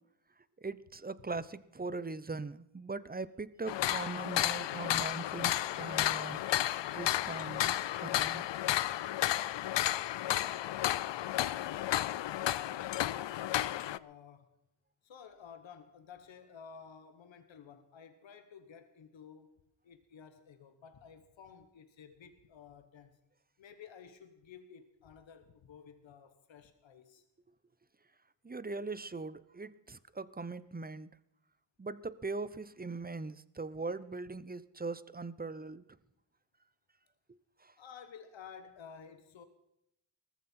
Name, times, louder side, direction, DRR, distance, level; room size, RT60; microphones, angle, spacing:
voice 1, 0.6-6.4 6.9-8.4 28.4-31.1 31.8-35.9 37.6-37.7, right 3 dB, 20° right, 17 dB, 0.8 m, -40 dB
sound 1, 3.7-14.0, left 13 dB, 75° left, 0.5 m, -32 dB
voice 2, 13.1-14.5 15.0-19.5 19.8-23.2 23.6-27.2 37.8-39.4, left 7 dB, 90° left, 9 dB, 1.2 m, -53 dB
19.0 x 14.5 x 4.4 m, 0.81 s
cardioid pair, 40°, 44 cm